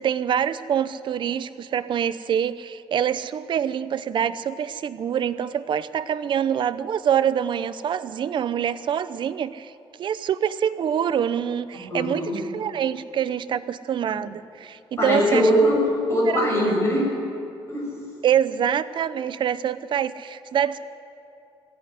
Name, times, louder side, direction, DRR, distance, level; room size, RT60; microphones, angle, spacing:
voice 1, 0.0-9.7 10.0-15.5 16.3-16.7 18.2-20.8, right 9 dB, 60° right, 14 dB, 0.7 m, -25 dB
voice 2, 11.7-12.4 14.1-14.2 15.0-17.1 17.7-17.9, equal, 30° left, -2 dB, 6.3 m, -21 dB
19.5 x 15.0 x 9.8 m, 2.7 s
wide cardioid pair, 165°, 9 cm